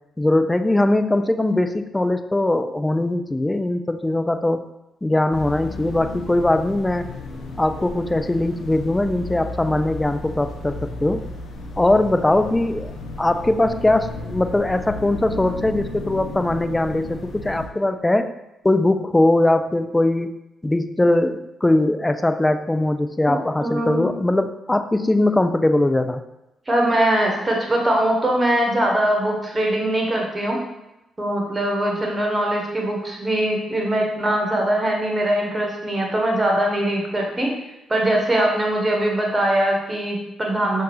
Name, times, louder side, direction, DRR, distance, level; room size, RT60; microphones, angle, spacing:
voice 1, 0.2-4.7 5.0-7.1 7.6-11.3 11.8-12.9 13.2-18.3 18.6-20.3 20.6-26.2, left 1 dB, 15° left, 9 dB, 0.4 m, -20 dB
sound 1, 5.3-17.7, left 2 dB, 60° left, 0.6 m, -34 dB
voice 2, 23.3-24.0 26.7-30.6 31.2-37.5 37.9-40.8, right 1 dB, 30° right, 0 dB, 1.3 m, -21 dB
5.7 x 2.6 x 3.1 m, 0.92 s
hypercardioid pair, 40°, 0 cm